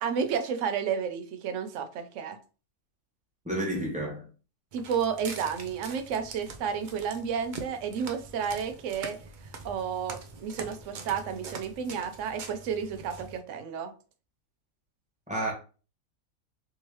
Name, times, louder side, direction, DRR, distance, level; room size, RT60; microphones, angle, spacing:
voice 1, 0.0-2.4 4.7-9.2 9.6-13.9, right 7 dB, 70° right, 0.8 m, -31 dB
voice 2, 3.4-4.3 15.3-15.5, right 1 dB, 5° right, 1.1 m, -30 dB
Walk footsteps, 4.7-13.4, right 4 dB, 90° right, 0.4 m, -44 dB
3.5 x 3.0 x 3.0 m
omnidirectional pair, 1.5 m